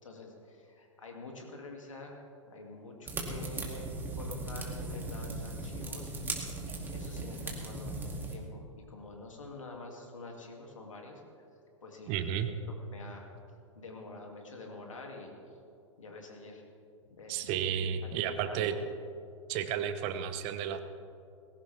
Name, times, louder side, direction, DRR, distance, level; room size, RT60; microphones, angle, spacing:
voice 1, 0.0-2.2 2.4-3.9 4.1-6.6 6.9-11.2 11.8-12.1 12.4-12.6 12.9-13.3 13.7-15.3 16.0-16.6 17.1-17.5 18.0-18.8, left 3 dB, 80° left, 1 dB, 2.5 m, -47 dB
sound 1, 3.1-8.3, right 2 dB, 10° right, 2.5 m, -38 dB
voice 2, 12.1-12.5 17.3-18.8 19.5-20.8, right 9 dB, 40° right, 9 dB, 1.2 m, -32 dB
20.0 x 17.0 x 3.5 m, 2.5 s
hypercardioid pair, 105°, 16 cm